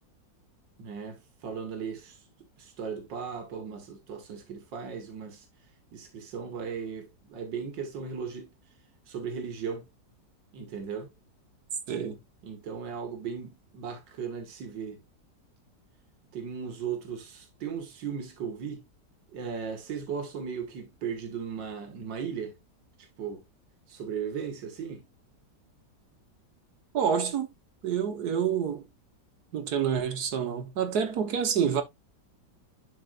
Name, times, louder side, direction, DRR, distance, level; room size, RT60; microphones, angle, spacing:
voice 1, 0.8-2.2 2.6-5.5 5.9-8.5 9.1-9.8 10.5-11.1 12.4-15.0 16.3-18.8 19.3-22.6 23.0-23.4 23.9-25.1, right 6 dB, 80° right, 2.1 m, -37 dB
voice 2, 26.9-27.5 27.8-28.8 29.5-31.8, right 7 dB, 65° right, 1.6 m, -27 dB
11.0 x 4.4 x 2.4 m
omnidirectional pair, 1.9 m